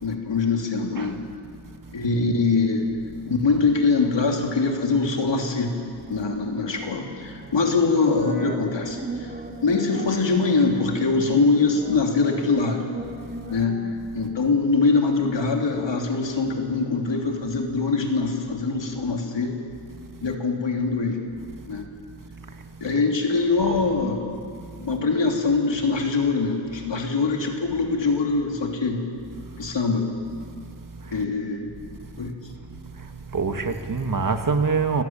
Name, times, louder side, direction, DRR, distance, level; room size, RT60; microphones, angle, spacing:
voice 1, 0.0-1.2 1.9-2.9 3.3-5.8 6.1-9.3 9.6-12.9 13.5-13.9 14.1-19.6 20.2-21.2 21.7-21.9 22.8-24.2 24.8-29.0 29.6-30.1 31.1-31.7 32.2-32.3, left 4 dB, 80° left, 2 dB, 3.3 m, -23 dB
sound 1, 6.8-13.9, right 2 dB, 25° right, 2.3 m, -38 dB
voice 2, 33.3-35.0, right 4 dB, 45° right, 6 dB, 1.9 m, -24 dB
28.5 x 17.0 x 9.1 m, 2.4 s
wide cardioid pair, 90°, 43 cm